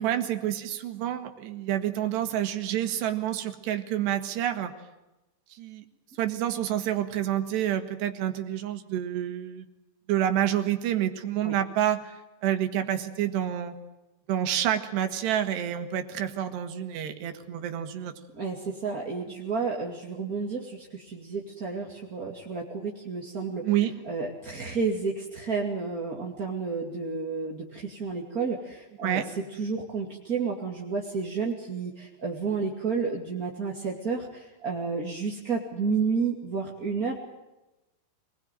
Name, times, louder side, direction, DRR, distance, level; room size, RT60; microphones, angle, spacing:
voice 1, 0.0-4.7 5.5-5.9 6.2-9.7 10.1-12.1 12.4-13.8 14.3-18.1 23.6-23.9 29.0-29.3, right 11 dB, 85° right, 7 dB, 3.9 m, -28 dB
voice 2, 18.3-23.7 24.0-29.2 29.5-37.2, right 5 dB, 25° right, -1 dB, 2.1 m, -31 dB
26.0 x 20.5 x 9.1 m, 1.0 s
omnidirectional pair, 4.7 m